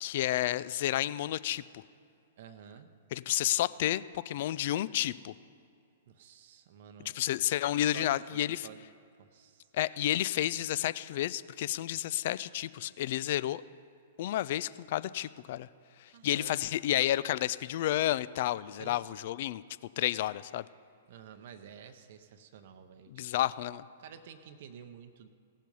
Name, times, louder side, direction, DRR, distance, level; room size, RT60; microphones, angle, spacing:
voice 1, 0.0-1.8 3.1-5.3 7.1-8.7 9.7-13.6 14.2-15.7 16.0-19.6 20.0-20.6 23.1-23.9, left 13 dB, 50° left, 18 dB, 0.3 m, -31 dB
voice 2, 2.4-2.9 6.1-7.2 7.9-8.8 9.2-9.7 16.1-16.6 18.8-19.2 21.1-23.5 24.0-25.3, right 8 dB, 55° right, 8 dB, 0.7 m, -51 dB
17.0 x 7.3 x 5.4 m, 2.4 s
figure-of-eight pair, 110°, 0 cm